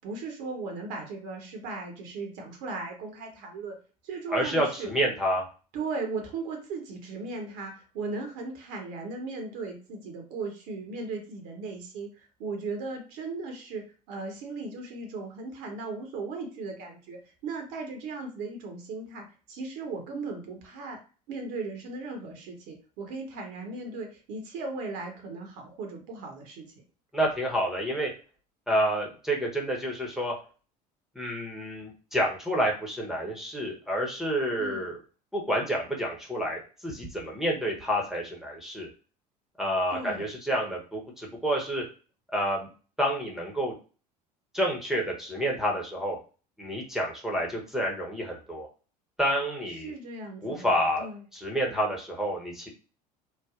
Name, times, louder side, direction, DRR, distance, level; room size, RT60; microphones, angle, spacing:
voice 1, 0.0-3.7 4.0-4.9 5.7-13.8 14.1-21.0 21.3-26.6 34.6-34.9 39.9-40.3 49.8-50.7 51.0-51.2, right 3 dB, 60° right, 3 dB, 0.9 m, -37 dB
voice 2, 4.3-5.4 27.1-28.1 28.7-30.3 31.1-35.0 35.3-38.9 39.6-41.8 42.3-42.7 43.0-43.7 44.5-46.2 46.6-48.7 49.2-49.9 50.4-51.1 51.3-52.7, equal, ahead, -3 dB, 0.8 m, -29 dB
3.2 x 2.1 x 2.4 m, 0.36 s
figure-of-eight pair, 70°, 21 cm